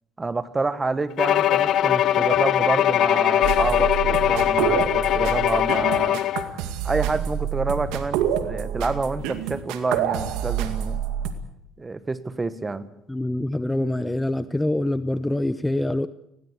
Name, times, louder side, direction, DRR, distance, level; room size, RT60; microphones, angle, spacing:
voice 1, 0.2-6.2 6.8-11.0 11.8-12.9, right 3 dB, 20° right, 13 dB, 1.6 m, -28 dB
Bowed string instrument, 1.2-6.5, left 12 dB, 65° left, 1.0 m, -21 dB
sound 1, 3.4-11.3, right 9 dB, 80° right, 2.1 m, -27 dB
voice 2, 13.1-16.1, left 1 dB, 10° left, 14 dB, 0.8 m, -25 dB
20.0 x 17.5 x 8.4 m, 0.78 s
supercardioid pair, 85°, 0 cm